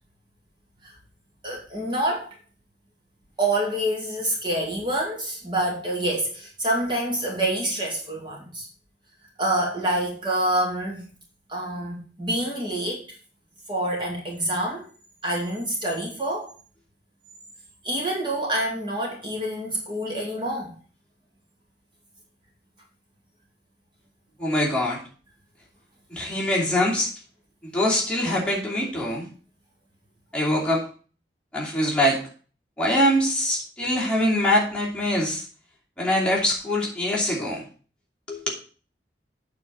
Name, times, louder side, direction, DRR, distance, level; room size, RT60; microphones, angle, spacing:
voice 1, 1.4-2.3 3.4-8.7 9.4-11.0 11.5-13.0 13.7-14.9 15.2-16.5 17.8-20.7, right 1 dB, 25° right, -2 dB, 2.5 m, -27 dB
voice 2, 24.4-25.0 26.1-27.1 27.7-29.3 30.3-30.8 31.5-32.2 32.8-35.4 36.0-37.6 38.3-38.4, left 1 dB, 5° left, -5 dB, 2.8 m, -23 dB
8.7 x 4.5 x 6.9 m, 0.39 s
head